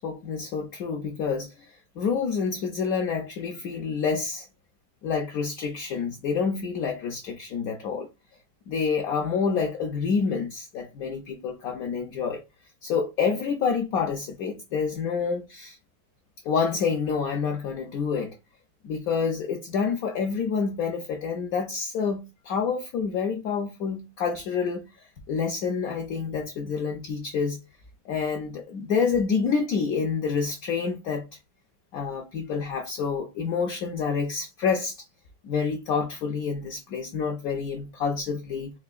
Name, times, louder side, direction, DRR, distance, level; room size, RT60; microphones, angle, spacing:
voice 1, 0.0-1.5 2.0-4.5 5.0-8.1 8.7-12.4 12.8-15.8 16.4-18.3 18.8-24.8 25.3-27.6 28.1-31.2 31.9-35.0 35.4-38.7, left 5 dB, 70° left, 0.9 m, -28 dB
4.5 x 2.5 x 2.4 m
omnidirectional pair, 2.0 m